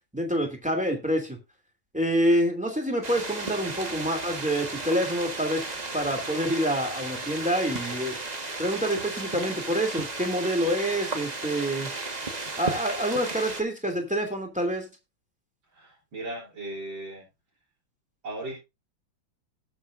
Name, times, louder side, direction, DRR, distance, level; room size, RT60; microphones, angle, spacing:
voice 1, 0.1-1.4 1.9-5.6 5.9-8.2 8.6-11.9 12.6-14.9, equal, 5° right, 3 dB, 2.6 m, -27 dB
sound 1, 3.0-13.6, right 3 dB, 25° right, 1.3 m, -34 dB
voice 2, 15.7-17.2 18.2-18.6, right 1 dB, 65° right, -5 dB, 4.1 m, -37 dB
18.0 x 6.8 x 2.6 m, 0.25 s
omnidirectional pair, 2.2 m